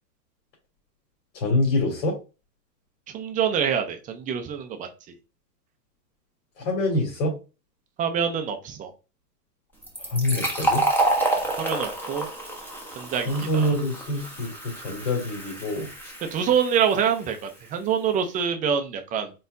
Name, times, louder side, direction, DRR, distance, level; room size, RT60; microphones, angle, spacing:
voice 1, 1.3-2.2 6.7-7.3 10.1-10.8 13.3-15.9, left 1 dB, 55° left, -1 dB, 2.4 m, -25 dB
voice 2, 3.1-4.9 8.0-8.9 11.6-12.3 13.0-13.7 16.3-19.3, right 7 dB, 15° right, 6 dB, 0.5 m, -25 dB
Fill (with liquid), 9.8-17.2, right 2 dB, 5° left, 0.9 m, -29 dB
4.2 x 4.0 x 2.6 m, 0.30 s
hypercardioid pair, 125°, 47 cm